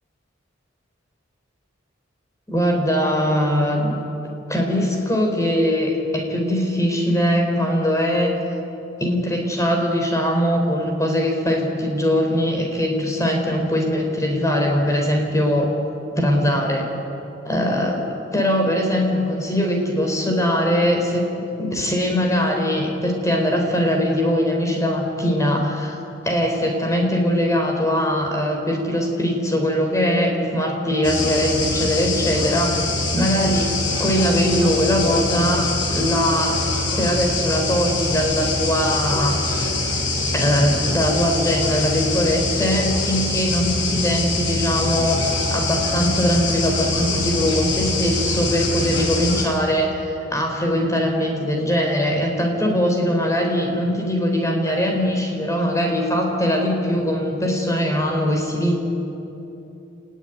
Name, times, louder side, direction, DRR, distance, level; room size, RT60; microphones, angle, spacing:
voice 1, 2.5-4.0 4.5-8.3 9.0-15.7 16.1-16.9 17.4-21.3 21.6-26.0 26.2-32.8 33.1-36.6 37.0-39.7 40.3-58.8, equal, 15° left, 2 dB, 4.8 m, -21 dB
sound 1, 31.0-49.4, left 2 dB, 65° left, 6.7 m, -24 dB
30.0 x 20.5 x 9.6 m, 3.0 s
head